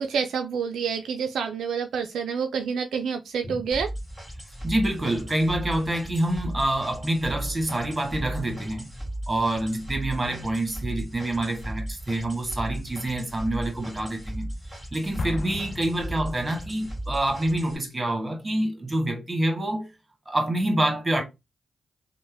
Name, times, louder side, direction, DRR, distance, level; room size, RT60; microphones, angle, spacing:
voice 1, 0.0-3.9, right 6 dB, 75° right, 0.3 m, -28 dB
sound 1, 3.7-17.8, right 1 dB, ahead, 1.6 m, -36 dB
voice 2, 4.6-8.9 9.3-14.5 14.9-19.9 20.2-21.2, right 1 dB, 25° right, 1.2 m, -27 dB
Explosion, 15.2-16.9, left 4 dB, 55° left, 0.3 m, -36 dB
3.1 x 2.1 x 3.4 m
supercardioid pair, 40°, 0 cm